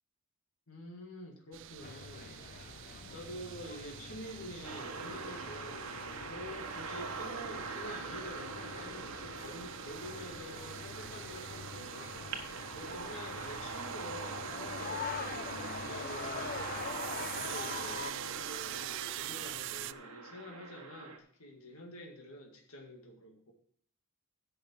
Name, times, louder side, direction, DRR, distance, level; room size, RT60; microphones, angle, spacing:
voice 1, 0.7-2.4 3.1-16.6 17.3-23.5, equal, 75° left, 1 dB, 2.1 m, -48 dB
sound 1, 1.5-19.9, right 14 dB, 55° right, 0.3 m, -46 dB
sound 2, 1.8-18.1, left 6 dB, 40° left, 0.4 m, -45 dB
sound 3, 4.6-21.2, right 4 dB, 90° right, 1.4 m, -43 dB
10.5 x 5.6 x 7.3 m, 0.64 s
head